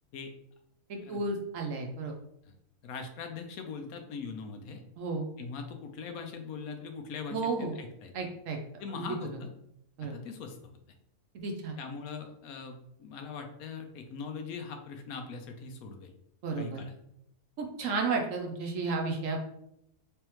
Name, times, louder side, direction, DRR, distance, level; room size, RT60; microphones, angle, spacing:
voice 1, 0.9-2.1 5.0-5.3 7.3-7.7 8.1-8.6 8.9-9.1 10.0-10.1 11.3-11.8 16.4-16.8 17.6-19.4, right 3 dB, 65° right, 3 dB, 0.9 m, -32 dB
voice 2, 2.8-4.8 5.4-8.1 8.8-9.5 10.0-10.6 11.8-16.1 16.6-16.9, left 5 dB, 75° left, 5 dB, 1.0 m, -41 dB
3.4 x 3.4 x 2.9 m, 0.76 s
omnidirectional pair, 1.6 m